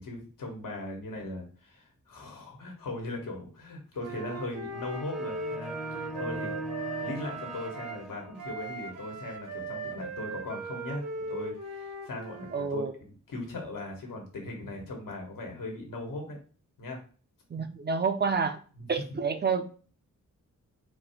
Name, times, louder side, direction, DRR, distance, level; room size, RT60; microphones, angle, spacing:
voice 1, 0.0-6.6 7.0-16.4 16.8-17.0 17.5-17.7 18.7-18.9, left 2 dB, 85° left, 1.5 m, -39 dB
Wind instrument woodwind instrument, 4.0-8.0 8.3-12.6, right 3 dB, 75° right, 1.3 m, -38 dB
sound 1, 4.7-8.7, equal, ahead, 0.8 m, -40 dB
voice 2, 12.5-12.9 17.5-18.6 18.9-19.7, right 5 dB, 30° right, 0.6 m, -28 dB
4.3 x 2.8 x 4.4 m
wide cardioid pair, 125°, 32 cm